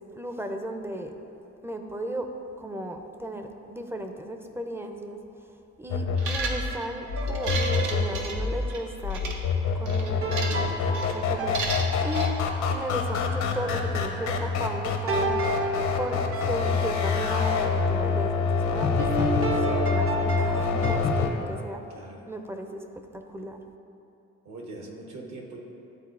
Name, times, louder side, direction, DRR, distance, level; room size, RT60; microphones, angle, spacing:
voice 1, 0.1-1.1 1.6-2.3 2.6-5.2 5.8-9.2 9.7-12.4 12.7-15.4 16.0-21.8 22.3-22.8 23.1-23.6, right 1 dB, 10° right, 5 dB, 0.4 m, -35 dB
sound 1, 5.9-21.3, left 5 dB, 70° left, 0.7 m, -27 dB
sound 2, 6.2-6.8 7.3-8.8 9.1-9.3 9.9-10.7 10.9-11.1 11.5-12.3, right 4 dB, 85° right, 0.8 m, -33 dB
sound 3, 7.1-8.6 10.2-12.4 15.1-17.1 19.0-21.0, right 2 dB, 50° right, 0.6 m, -31 dB
voice 2, 21.9-22.2 24.4-25.6, right 2 dB, 65° right, 1 dB, 1.1 m, -41 dB
11.5 x 3.9 x 2.5 m, 2.7 s
cardioid pair, 90°, 30 cm